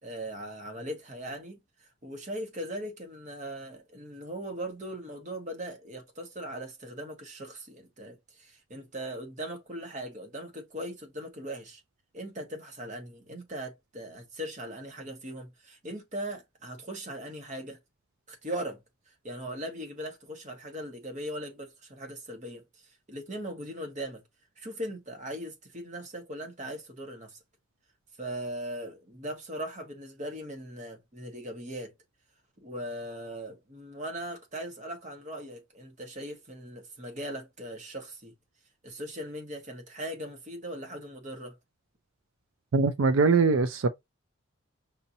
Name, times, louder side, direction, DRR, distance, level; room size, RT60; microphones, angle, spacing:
voice 1, 0.0-1.6 2.0-11.8 12.1-17.8 18.3-18.8 19.2-22.6 23.1-24.2 24.6-27.4 28.2-31.9 32.6-38.3 38.8-41.6, right 1 dB, 35° right, 1.2 m, -39 dB
voice 2, 42.7-43.9, right 4 dB, 80° right, 0.5 m, -22 dB
5.5 x 2.7 x 2.7 m
head